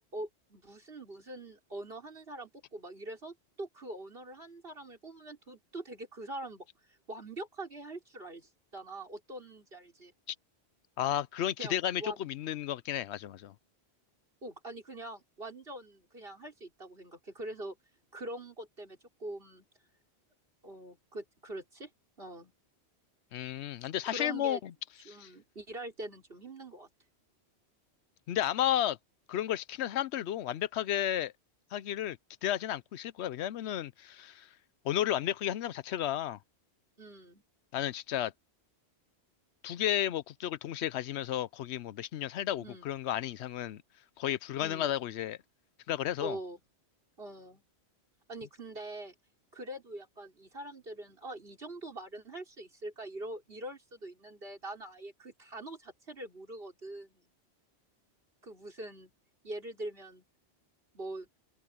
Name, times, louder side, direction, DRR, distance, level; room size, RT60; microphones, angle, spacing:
voice 1, 0.0-6.7 7.1-10.1 11.6-12.2 14.4-17.8 18.1-19.6 20.6-21.9 22.2-22.5 24.1-24.6 25.0-26.9 37.0-37.4 42.6-42.9 44.6-44.9 46.2-46.6 47.2-47.6 48.3-49.1 49.5-57.2 58.4-59.1 59.4-60.2 60.9-61.3, right 1 dB, 60° right, 4.8 m, -43 dB
voice 2, 11.0-13.5 23.3-24.7 25.1-25.3 28.3-29.0 29.3-31.3 31.7-34.5 34.8-36.4 37.7-38.3 39.6-43.8 44.2-45.4 45.9-46.4, left 11 dB, 85° left, 0.9 m, -33 dB
omnidirectional pair, 1.1 m